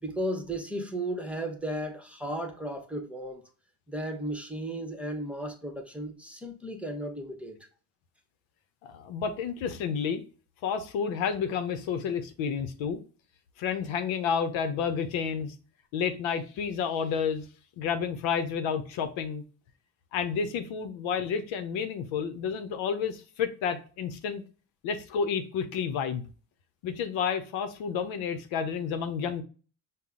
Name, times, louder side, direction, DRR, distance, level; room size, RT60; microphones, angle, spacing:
voice 1, 0.0-3.4 3.9-7.6, right 1 dB, 5° right, 1.0 m, -35 dB
voice 2, 8.8-10.2 10.6-13.0 13.6-15.5 15.9-17.4 17.8-19.4 20.1-24.4 24.8-26.3 26.8-29.4, left 6 dB, 75° left, 0.8 m, -30 dB
5.4 x 2.2 x 3.7 m
supercardioid pair, 70°, 47 cm